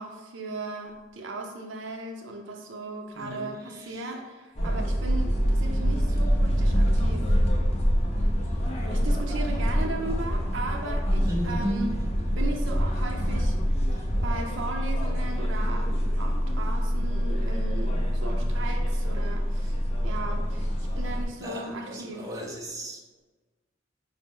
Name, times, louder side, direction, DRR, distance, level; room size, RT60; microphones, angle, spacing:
voice 1, 0.0-7.4 8.9-12.0 12.4-13.6 14.2-19.8 20.0-20.7 20.9-22.3, right 2 dB, 85° right, 2 dB, 0.5 m, -37 dB
voice 2, 3.1-3.5 11.3-11.9 18.3-18.5 21.4-23.0, equal, 20° right, -2 dB, 0.6 m, -34 dB
sound 1, 4.6-21.3, equal, 35° left, 0.5 m, -25 dB
4.9 x 2.0 x 3.7 m, 1.3 s
head